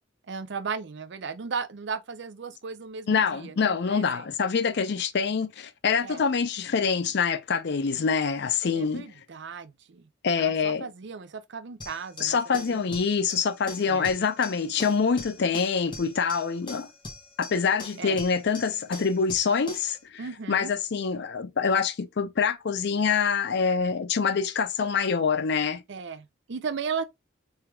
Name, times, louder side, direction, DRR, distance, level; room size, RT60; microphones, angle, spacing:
voice 1, 0.3-4.2 6.0-6.2 8.8-10.1 10.4-12.4 12.7-13.0 13.9-14.1 18.0-18.2 20.2-20.7 25.9-27.0, right 5 dB, 70° right, 0.5 m, -36 dB
voice 2, 3.1-9.1 10.2-10.9 12.2-16.9 17.4-20.0 20.5-25.8, left 5 dB, 65° left, 0.5 m, -25 dB
sound 1, 11.8-20.0, left 2 dB, 25° left, 1.0 m, -42 dB
4.5 x 3.4 x 2.2 m
head